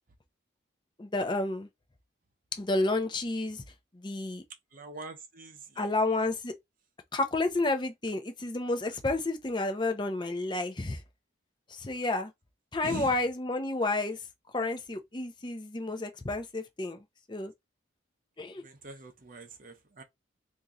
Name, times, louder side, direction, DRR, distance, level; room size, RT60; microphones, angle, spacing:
voice 1, 1.0-1.7 2.6-3.6 3.9-4.4 5.8-6.5 7.1-11.0 11.7-12.3 12.7-14.2 14.5-17.5 18.4-18.6, left 2 dB, 25° left, 0.6 m, -31 dB
voice 2, 4.7-5.9 12.8-13.2 18.6-20.0, right 2 dB, 45° right, 0.7 m, -43 dB
2.9 x 2.6 x 3.6 m
head